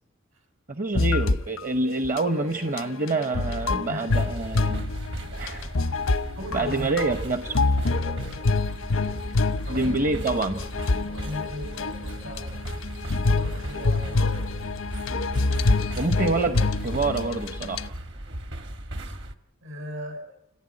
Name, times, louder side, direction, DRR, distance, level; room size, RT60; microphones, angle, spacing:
voice 1, 0.7-4.9 5.4-5.7 6.5-7.6 9.7-10.6 16.0-17.9, right 2 dB, 40° right, 9 dB, 0.9 m, -27 dB
sound 1, 1.0-1.7 2.0-2.2 2.6-17.9, left 3 dB, 85° left, 0.8 m, -27 dB
voice 2, 3.9-4.3 5.2-5.8 6.4-6.9 7.8-8.4 9.6-9.9 11.0-12.9 13.3-14.4 19.6-20.3, left 1 dB, 85° right, 5 dB, 6.9 m, -39 dB
sound 2, 4.1-19.3, right 1 dB, 60° right, 1.6 m, -37 dB
29.0 x 15.0 x 9.7 m, 0.83 s
head